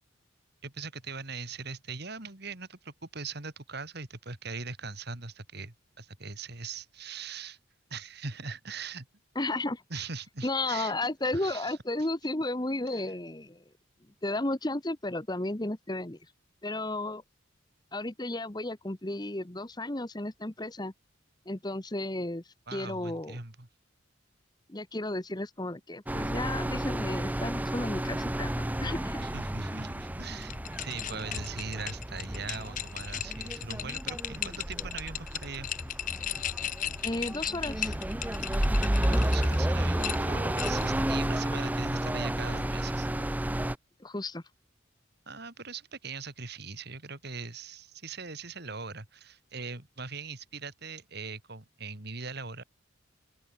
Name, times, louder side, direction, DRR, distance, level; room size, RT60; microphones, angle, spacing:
voice 1, 0.6-7.6 7.9-9.1 9.9-10.9 11.3-11.8 12.9-13.0 22.7-23.7 29.2-35.7 39.1-43.1 45.3-52.6, right 4 dB, 50° right, 2.5 m, -40 dB
voice 2, 9.3-9.8 10.4-13.6 14.2-16.2 16.6-17.2 17.9-20.9 21.5-23.4 24.7-29.3 37.0-38.0 44.0-44.4, left 2 dB, 20° left, 1.1 m, -33 dB
sound 1, 26.1-43.7, right 1 dB, 10° right, 0.6 m, -31 dB
sound 2, 30.4-39.6 40.0-41.0, left 10 dB, 40° left, 0.6 m, -36 dB
open air
head